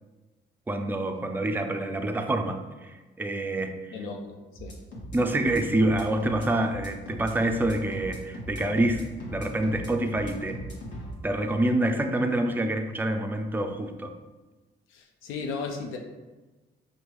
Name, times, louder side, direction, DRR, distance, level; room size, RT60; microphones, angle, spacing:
voice 1, 0.7-4.0 5.1-10.6 11.2-14.1, right 1 dB, 10° right, 5 dB, 0.3 m, -27 dB
voice 2, 3.9-4.7 14.9-16.0, left 4 dB, 90° left, 3 dB, 0.5 m, -35 dB
sound 1, 4.5-11.1, equal, 65° left, 1.2 m, -39 dB
4.9 x 2.6 x 3.0 m, 1.2 s
cardioid pair, 90°, 20 cm